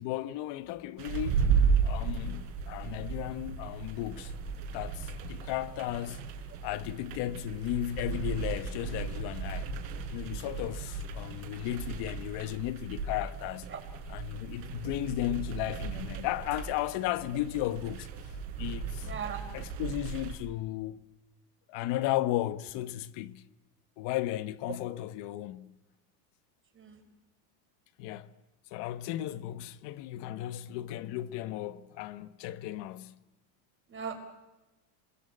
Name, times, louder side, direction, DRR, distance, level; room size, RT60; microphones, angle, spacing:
voice 1, 0.0-1.4 1.8-4.3 4.7-6.2 6.6-9.7 10.1-13.7 14.1-18.1 18.6-19.1 19.5-21.0 21.7-23.4 24.0-25.7 28.0-28.3 28.7-33.2, left 14 dB, 55° left, 1.3 m, -35 dB
sound 1, 1.0-20.3, right 6 dB, 85° right, 5.3 m, -35 dB
voice 2, 19.0-19.5 24.7-24.8 26.7-27.0 33.9-34.2, right 7 dB, 25° right, 4.8 m, -38 dB
27.5 x 21.5 x 8.7 m
supercardioid pair, 135°, 49 cm